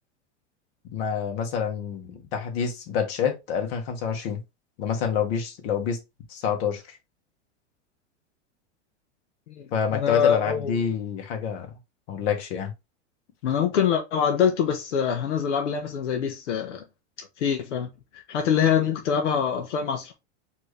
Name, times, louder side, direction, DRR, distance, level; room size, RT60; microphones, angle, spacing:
voice 1, 0.9-4.4 4.8-6.0 6.3-7.0 9.7-11.7 12.1-12.7, left 7 dB, 60° left, 1.7 m, -27 dB
voice 2, 9.5-10.8 13.4-16.8 17.2-20.1, left 8 dB, 90° left, 1.0 m, -25 dB
4.5 x 3.1 x 3.2 m
supercardioid pair, 130°, 35 cm